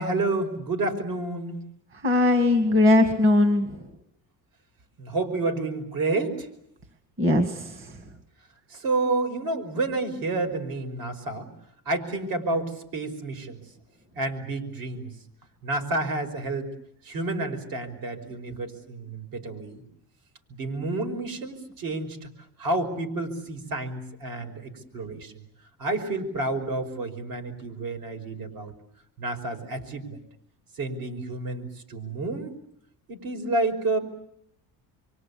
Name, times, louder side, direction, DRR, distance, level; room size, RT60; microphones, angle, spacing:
voice 1, 0.0-1.6 5.0-6.5 8.7-11.5 11.9-13.6 14.2-15.1 15.6-16.7 17.0-19.8 20.5-22.3 22.6-25.3 25.8-28.7 29.2-30.2 30.8-32.5 33.1-34.0, right 2 dB, 65° right, 6 dB, 5.4 m, -29 dB
voice 2, 2.0-3.7 7.2-7.9, left 2 dB, 35° right, 7 dB, 2.2 m, -20 dB
27.5 x 24.0 x 8.5 m, 0.76 s
cardioid pair, 145°, 38 cm